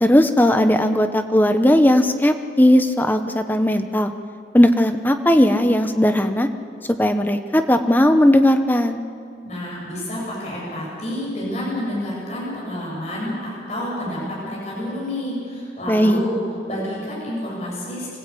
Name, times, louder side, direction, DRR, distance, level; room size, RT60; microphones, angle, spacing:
voice 1, 0.0-4.1 4.5-6.5 6.9-9.0 15.9-16.2, left 1 dB, 10° left, 7 dB, 0.9 m, -17 dB
voice 2, 9.4-16.4 16.7-18.2, left 1 dB, 40° left, -5 dB, 7.3 m, -29 dB
24.5 x 15.5 x 8.5 m, 2.5 s
head